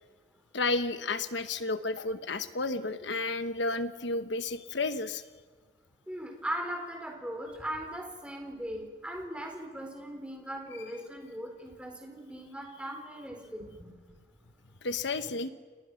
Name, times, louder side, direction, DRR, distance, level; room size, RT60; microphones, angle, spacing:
voice 1, 0.5-5.2 14.8-15.5, left 3 dB, 70° left, 10 dB, 1.1 m, -32 dB
voice 2, 6.1-13.9, right 1 dB, 5° right, 2 dB, 4.5 m, -39 dB
29.5 x 29.0 x 6.4 m, 1.5 s
head